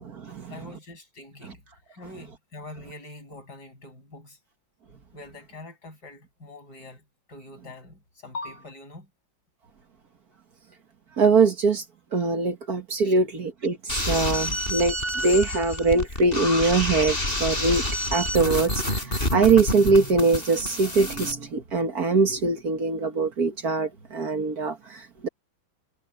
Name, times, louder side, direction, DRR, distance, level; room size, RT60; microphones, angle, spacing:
voice 1, 0.5-1.6 1.9-4.4 5.1-7.0 7.3-9.1 13.0-13.1, left 2 dB, 55° left, 7.6 m, -43 dB
voice 2, 11.2-11.8 12.1-13.8 14.1-17.8 18.1-19.0 19.3-24.8 25.2-25.3, right 4 dB, 55° right, 1.9 m, -22 dB
sound 1, 13.9-21.3, left 1 dB, 30° left, 6.1 m, -28 dB
omnidirectional pair, 2.0 m